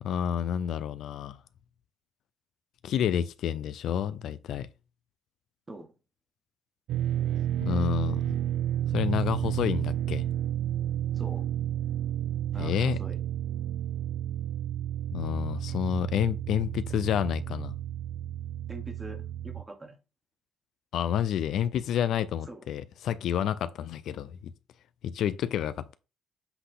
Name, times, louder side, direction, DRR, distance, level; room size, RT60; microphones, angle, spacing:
voice 1, 0.0-1.4 2.8-4.7 7.6-8.3 8.9-10.3 12.6-13.0 15.1-17.8 20.9-24.5 25.0-25.9, left 9 dB, 70° left, 0.6 m, -29 dB
sound 1, 6.9-19.6, right 11 dB, 80° right, 0.7 m, -31 dB
voice 2, 11.1-11.5 12.5-13.2 15.7-15.8 18.7-20.0 22.4-22.6, right 1 dB, 20° right, 1.4 m, -44 dB
7.8 x 4.1 x 3.8 m
cardioid pair, 130°, 0 cm